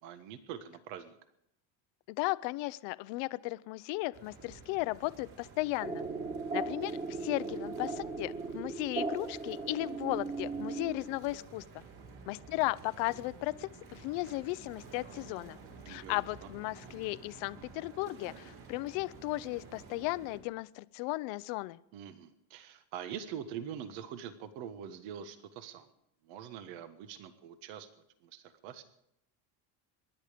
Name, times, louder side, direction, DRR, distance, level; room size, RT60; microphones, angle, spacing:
voice 1, 0.0-1.2 15.8-16.2 21.9-25.9 26.2-27.9 28.2-28.8, right 8 dB, 70° right, 10 dB, 1.5 m, -44 dB
voice 2, 2.1-6.0 6.5-11.6 12.3-15.6 15.9-21.8, left 21 dB, 70° left, 17 dB, 0.7 m, -35 dB
sound 1, 4.1-20.4, right 4 dB, 50° right, 6.6 m, -52 dB
sound 2, 5.8-11.3, right 3 dB, 20° right, 2.1 m, -37 dB
25.5 x 11.0 x 5.1 m, 0.75 s
cardioid pair, 135°, 47 cm